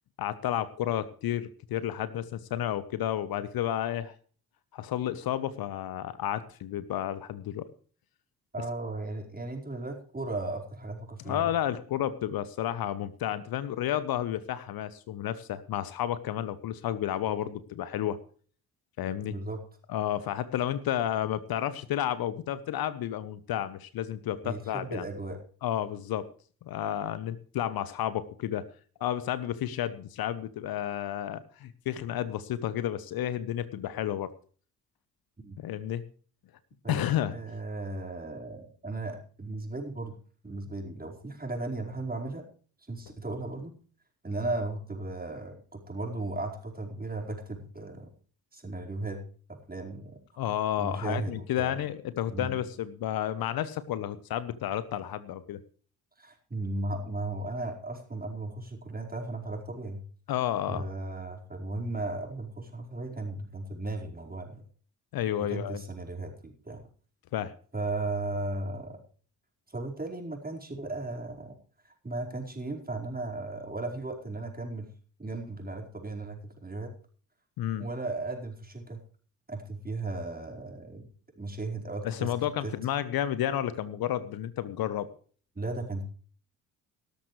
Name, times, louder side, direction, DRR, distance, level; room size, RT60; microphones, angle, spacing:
voice 1, 0.2-4.1 4.7-7.7 11.3-18.2 19.0-19.3 19.9-25.0 25.6-26.3 26.6-28.7 29.0-34.3 35.6-36.0 36.9-37.3 50.4-55.6 60.3-60.9 65.1-65.8 67.3-67.5 77.6-77.9 82.0-85.1, left 11 dB, 55° left, 16 dB, 1.0 m, -31 dB
voice 2, 8.5-11.5 19.2-19.6 24.4-25.4 35.4-35.6 36.8-37.0 37.3-40.1 40.4-42.4 42.9-43.7 44.2-48.1 48.5-49.2 49.5-50.2 50.8-51.8 52.3-52.6 56.2-60.0 60.7-64.6 65.4-66.8 67.7-69.0 69.7-71.6 71.8-74.9 75.2-76.9 77.8-79.0 79.5-81.1 81.3-82.7 85.5-86.1, right 2 dB, 20° right, 1 dB, 4.7 m, -36 dB
17.5 x 13.0 x 3.2 m, 0.43 s
hypercardioid pair, 45°, 43 cm